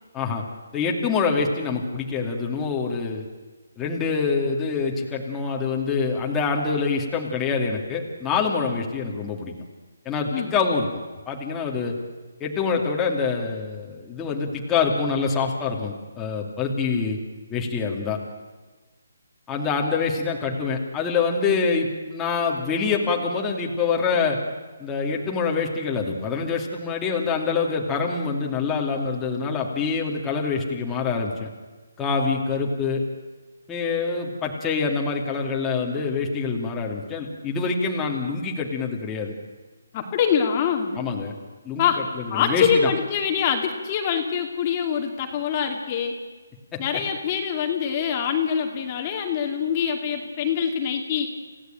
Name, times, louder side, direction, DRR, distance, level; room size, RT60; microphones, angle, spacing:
voice 1, 0.7-3.2 3.8-9.5 10.0-10.9 11.3-11.9 12.4-17.2 17.5-18.2 19.5-24.4 24.8-31.5 32.0-33.0 33.7-39.4 40.9-41.3 41.6-41.9 42.2-42.9 46.7-46.8, left 5 dB, 10° left, -1 dB, 2.5 m, -25 dB
voice 2, 39.9-40.9 41.8-42.0 42.3-46.1 46.8-51.3, left 7 dB, 25° left, 3 dB, 2.4 m, -24 dB
28.5 x 16.5 x 9.1 m, 1.3 s
hypercardioid pair, 160°, 0 cm